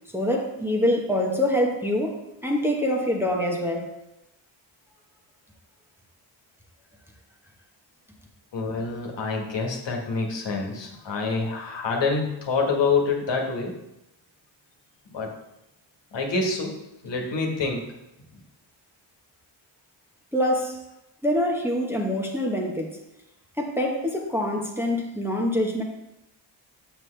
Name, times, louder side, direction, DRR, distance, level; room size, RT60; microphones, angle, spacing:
voice 1, 0.1-3.9 20.3-20.8 21.2-22.9 23.6-25.8, left 1 dB, 5° right, -1 dB, 1.1 m, -25 dB
voice 2, 8.5-13.7 15.1-15.3 16.1-16.8 17.0-17.8, left 4 dB, 65° left, 0 dB, 1.6 m, -26 dB
6.9 x 5.9 x 3.3 m, 0.88 s
cardioid pair, 80°, 48 cm